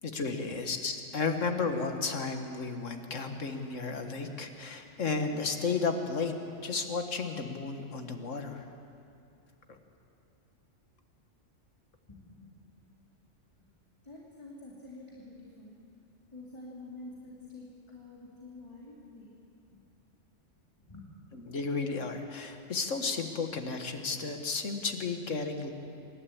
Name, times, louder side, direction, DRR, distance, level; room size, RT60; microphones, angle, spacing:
voice 1, 0.0-6.4 6.6-8.7 21.5-25.7, left 4 dB, 85° left, 5 dB, 1.9 m, -33 dB
voice 2, 12.1-12.6 13.0-13.1 13.6-13.7 14.0-15.8 16.3-19.3 19.7-19.8 20.8-21.1, left 2 dB, 25° left, -4 dB, 2.5 m, -48 dB
26.0 x 12.5 x 8.6 m, 2.6 s
omnidirectional pair, 1.3 m